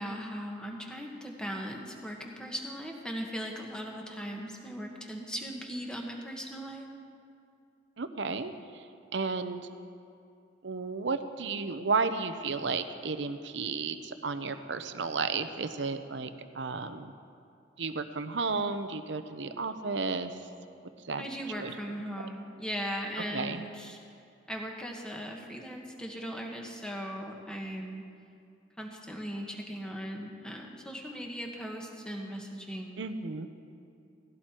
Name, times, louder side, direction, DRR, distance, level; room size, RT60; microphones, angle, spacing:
voice 1, 0.0-6.9 21.2-24.0 24.5-28.0 28.8-33.0, equal, 5° left, 0 dB, 1.5 m, -38 dB
voice 2, 8.0-8.9 9.1-9.6 10.6-16.3 16.5-17.1 17.8-20.3 21.0-21.2 21.5-21.7 23.3-23.6 33.0-33.5, right 4 dB, 75° right, 10 dB, 0.8 m, -33 dB
18.0 x 16.0 x 4.5 m, 2.5 s
head